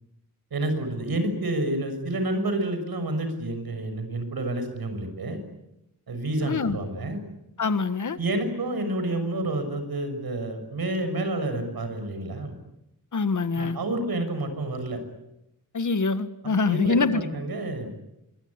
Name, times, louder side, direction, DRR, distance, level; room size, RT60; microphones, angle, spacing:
voice 1, 0.5-5.4 6.1-7.2 8.2-12.6 13.6-15.0 16.6-17.9, right 1 dB, 85° right, 8 dB, 6.5 m, -29 dB
voice 2, 6.5-6.8 7.6-8.2 13.1-13.8 15.7-17.2, left 4 dB, 55° left, 11 dB, 1.7 m, -24 dB
25.0 x 23.0 x 9.8 m, 0.88 s
wide cardioid pair, 145°, 35 cm